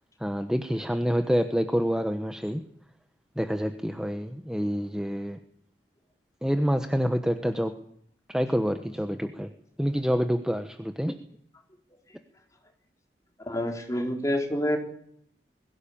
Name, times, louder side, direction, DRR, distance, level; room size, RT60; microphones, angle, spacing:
voice 1, 0.2-2.6 3.4-5.4 6.4-7.7 8.3-9.5 9.8-11.2, equal, 5° right, 7 dB, 1.1 m, -27 dB
voice 2, 13.4-14.8, left 1 dB, 20° left, 3 dB, 4.3 m, -27 dB
22.0 x 17.0 x 8.8 m, 0.66 s
head